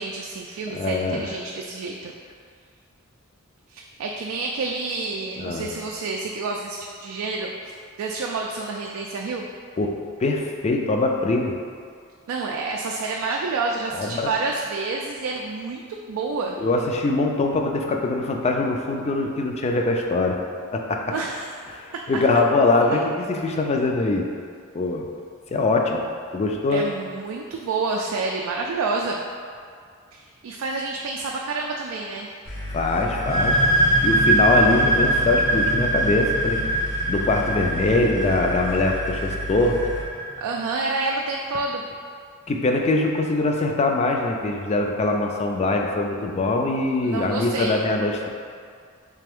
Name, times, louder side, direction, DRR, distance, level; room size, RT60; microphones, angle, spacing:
voice 1, 0.0-2.1 3.7-7.5 8.0-9.5 12.3-16.6 21.1-21.5 26.7-29.2 30.1-32.3 40.4-41.8 47.0-47.8, right 3 dB, 80° right, 0 dB, 0.3 m, -28 dB
voice 2, 0.7-1.2 5.4-5.7 9.8-11.5 13.9-14.3 16.6-20.4 20.7-21.1 21.7-24.3 24.7-25.0 25.5-26.0 26.3-26.8 32.7-33.6 34.0-36.6 37.1-39.8 42.5-48.3, left 2 dB, 30° left, 2 dB, 0.3 m, -23 dB
sound 1, 32.4-40.0, left 1 dB, 80° left, 0.8 m, -33 dB
sound 2, 33.1-40.6, right 1 dB, 35° right, 0.6 m, -23 dB
3.4 x 3.3 x 3.5 m, 2.2 s
head